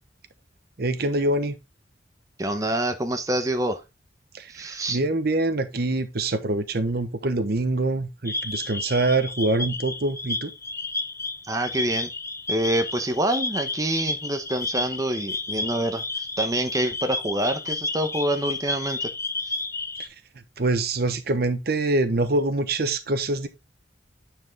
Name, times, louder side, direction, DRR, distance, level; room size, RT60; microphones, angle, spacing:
voice 1, 0.8-1.6 4.3-10.5 20.0-20.1 20.6-23.5, right 2 dB, 60° right, 0.9 m, -25 dB
voice 2, 2.4-3.8 4.5-5.0 11.4-12.1 12.5-19.1 19.4-19.6, right 1 dB, 20° right, 0.8 m, -26 dB
sound 1, 8.3-20.1, left 3 dB, 15° left, 0.6 m, -31 dB
9.4 x 4.8 x 3.4 m
head